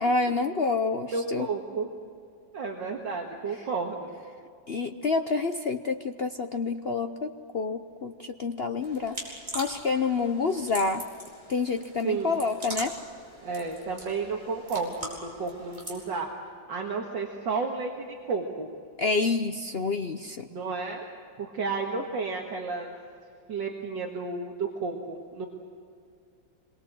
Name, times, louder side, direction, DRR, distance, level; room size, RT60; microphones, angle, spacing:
voice 1, 0.0-1.5 4.7-11.0 11.5-13.0 19.0-20.5, left 4 dB, 60° left, 6 dB, 0.6 m, -28 dB
voice 2, 1.1-1.9 2.5-4.1 12.0-12.5 13.4-16.3 16.7-18.7 20.5-21.1 21.4-23.0 23.5-25.5, right 4 dB, 70° right, 0 dB, 2.4 m, -32 dB
sound 1, 8.8-16.0, equal, 20° right, 6.0 m, -42 dB
27.0 x 22.5 x 7.7 m, 2.4 s
omnidirectional pair, 2.1 m